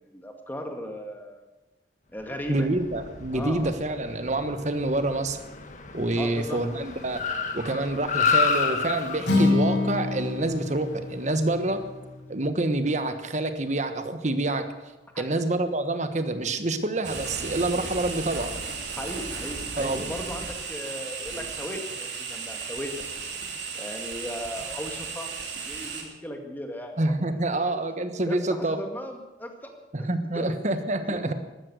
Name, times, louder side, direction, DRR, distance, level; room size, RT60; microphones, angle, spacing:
voice 1, 0.1-1.5 2.1-2.7 3.3-3.7 6.2-6.6 15.1-15.4 19.0-22.9 23.7-27.0 27.5-27.7 28.2-29.7 30.0-30.1 30.3-30.6 31.0-31.3, equal, 10° left, 3 dB, 2.0 m, -37 dB
Car, 2.3-11.8, left 5 dB, 45° left, 1.4 m, -31 dB
voice 2, 2.5-5.4 5.9-7.2 7.5-11.8 12.3-14.7 15.2-18.5 19.8-20.1 27.0-28.8 29.9-31.3, right 2 dB, 40° right, 9 dB, 1.3 m, -27 dB
Acoustic guitar, 9.2-13.5, left 2 dB, 85° left, 5.5 m, -28 dB
sound 1, 17.0-26.0, right 5 dB, 80° right, 3.5 m, -35 dB
13.0 x 13.0 x 7.9 m, 1.1 s
head